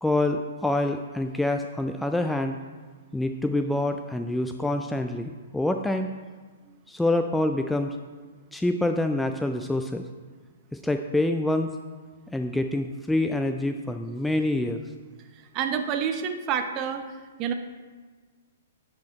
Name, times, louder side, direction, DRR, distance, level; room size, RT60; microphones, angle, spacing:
voice 1, 0.0-2.6 3.1-6.1 6.9-8.0 8.5-10.1 10.7-11.7 12.3-14.8, left 1 dB, 5° left, 6 dB, 0.3 m, -26 dB
voice 2, 15.5-17.0 17.4-17.5, right 7 dB, 35° right, 7 dB, 0.7 m, -28 dB
9.2 x 5.1 x 4.3 m, 1.4 s
hypercardioid pair, 120°, 0 cm